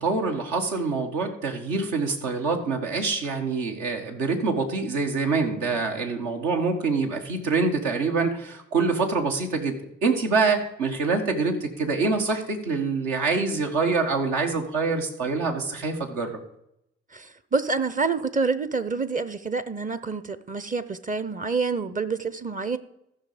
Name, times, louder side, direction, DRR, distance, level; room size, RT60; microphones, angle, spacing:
voice 1, 0.0-9.8 10.0-16.4, right 4 dB, 70° right, 1.6 m, -25 dB
voice 2, 17.5-22.8, right 4 dB, 25° right, 0.8 m, -27 dB
14.5 x 6.2 x 5.0 m
figure-of-eight pair, 40°, 31 cm